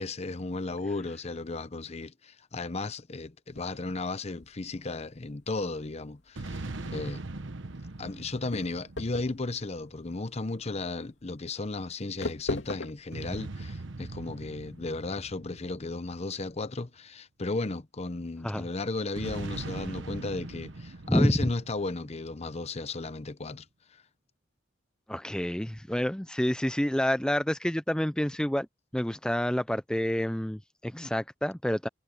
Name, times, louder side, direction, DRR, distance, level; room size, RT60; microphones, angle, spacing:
voice 1, 0.0-7.2 8.0-23.7, left 3 dB, 35° left, 0.8 m, -35 dB
sound 1, 3.5-14.9, left 2 dB, 70° left, 3.0 m, -41 dB
sound 2, 6.4-10.0 13.1-16.8 19.2-22.6, right 2 dB, 75° right, 1.2 m, -41 dB
voice 2, 25.1-28.7 28.9-31.9, equal, 5° left, 0.5 m, -28 dB
head